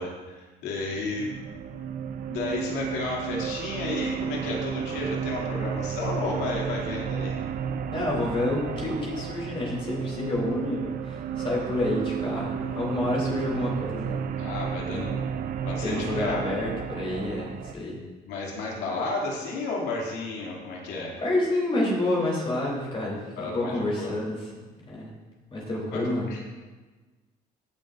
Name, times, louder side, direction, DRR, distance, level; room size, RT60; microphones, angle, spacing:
voice 1, 0.0-1.4 2.3-7.4 14.4-15.1 15.6-16.5 18.3-21.2 23.4-24.1 25.9-26.0 26.3-26.4, left 3 dB, 90° left, -3 dB, 2.6 m, -32 dB
sound 1, 0.7-17.7, right 8 dB, 55° right, 0.5 m, -32 dB
voice 2, 7.9-14.2 14.9-15.1 15.8-18.0 21.2-24.5 24.9-25.1 25.5-26.3, left 1 dB, 35° left, -4 dB, 3.2 m, -29 dB
15.5 x 9.0 x 2.6 m, 1.3 s
cardioid pair, 110°, 17 cm